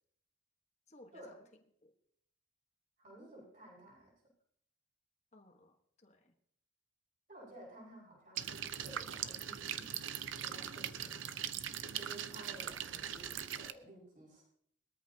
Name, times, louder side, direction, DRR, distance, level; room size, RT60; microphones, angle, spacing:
voice 1, 0.9-1.9 5.3-6.3 11.6-11.8, left 1 dB, 35° left, 4 dB, 1.3 m, -61 dB
voice 2, 3.0-4.1 7.3-11.4 11.9-14.4, right 1 dB, 45° right, -3 dB, 5.4 m, -55 dB
sound 1, 8.4-13.7, right 9 dB, 85° right, 0.6 m, -41 dB
20.5 x 13.5 x 2.8 m, 0.69 s
head